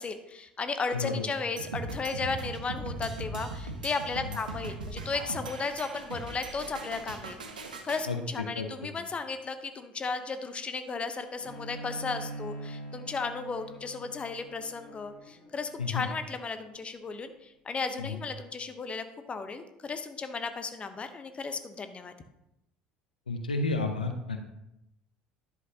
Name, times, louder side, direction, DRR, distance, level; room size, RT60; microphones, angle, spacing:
voice 1, 0.0-7.4 7.8-22.1, left 4 dB, 25° left, 9 dB, 0.9 m, -35 dB
sound 1, 1.6-8.1, right 3 dB, 80° right, 1.0 m, -39 dB
Bowed string instrument, 11.4-16.7, right 1 dB, 50° left, 2.5 m, -44 dB
voice 2, 23.3-24.4, left 3 dB, 85° left, 6 dB, 0.7 m, -31 dB
11.0 x 7.7 x 2.8 m, 0.87 s
figure-of-eight pair, 65°, 4 cm